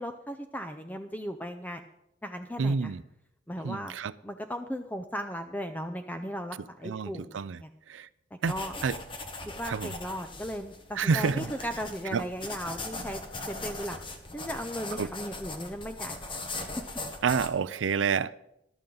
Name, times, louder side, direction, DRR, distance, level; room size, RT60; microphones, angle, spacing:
voice 1, 0.0-1.8 2.2-2.9 3.5-4.0 4.2-7.7 8.3-8.8 9.5-13.2 13.5-14.0 14.3-16.5, equal, 10° left, 0.5 m, -37 dB
voice 2, 2.6-3.0 3.6-4.1 6.8-7.6 7.9-8.1 8.4-8.5 8.8-8.9 9.7-9.9 11.0-11.5 12.1-12.2 15.0-15.1 17.2-18.4, right 5 dB, 90° right, 0.5 m, -28 dB
sound 1, 8.4-17.5, left 2 dB, 30° left, 1.2 m, -40 dB
14.0 x 12.0 x 3.9 m
head